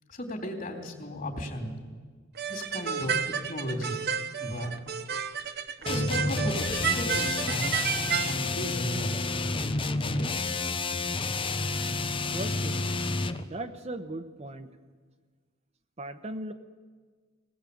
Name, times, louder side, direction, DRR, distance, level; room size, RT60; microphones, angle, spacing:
voice 1, 0.1-1.7 2.5-4.0 4.4-4.7 5.9-9.1 10.0-10.4, equal, 45° left, 2 dB, 3.6 m, -35 dB
sound 1, 2.4-8.3, right 7 dB, 55° right, 1.0 m, -31 dB
sound 2, 5.9-13.5, left 3 dB, 25° left, 0.8 m, -30 dB
voice 2, 12.3-13.0 13.4-14.7 16.0-16.5, right 1 dB, 35° right, 7 dB, 1.1 m, -38 dB
21.5 x 18.5 x 8.6 m, 1.5 s
head